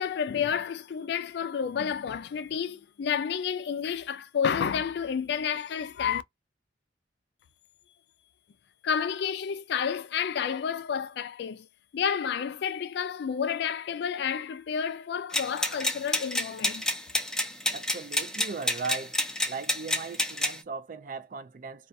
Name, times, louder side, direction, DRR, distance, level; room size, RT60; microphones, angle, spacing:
voice 1, 0.0-6.2 8.8-11.7 11.9-16.8, left 7 dB, 60° left, 0.3 m, -30 dB
sound 1, 15.3-20.6, left 1 dB, 5° left, 0.6 m, -29 dB
voice 2, 17.7-19.2 19.5-21.9, right 4 dB, 45° right, 0.4 m, -38 dB
2.3 x 2.3 x 2.6 m
head